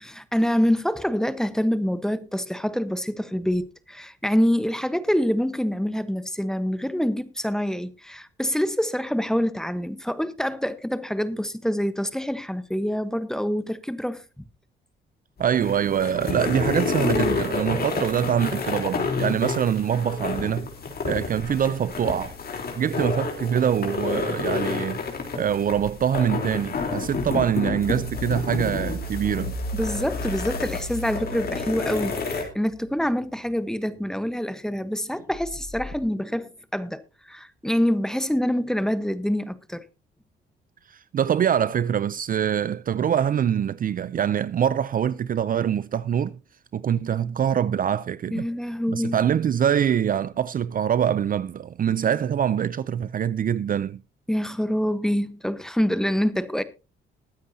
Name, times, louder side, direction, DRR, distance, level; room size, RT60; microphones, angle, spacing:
voice 1, 0.0-14.4 29.7-39.8 48.3-49.2 54.3-56.6, equal, 5° left, 1.1 m, -26 dB
sound 1, 15.4-32.4, left 4 dB, 50° left, 3.7 m, -30 dB
voice 2, 15.4-20.7 21.0-22.3 22.8-25.0 25.4-29.6 40.9-46.4 46.7-48.5 48.9-54.0, right 9 dB, 45° right, 0.5 m, -24 dB
sound 2, 25.7-33.1 35.3-36.0, left 1 dB, 80° left, 3.3 m, -36 dB
21.0 x 9.3 x 2.8 m
cardioid pair, 90°, 20 cm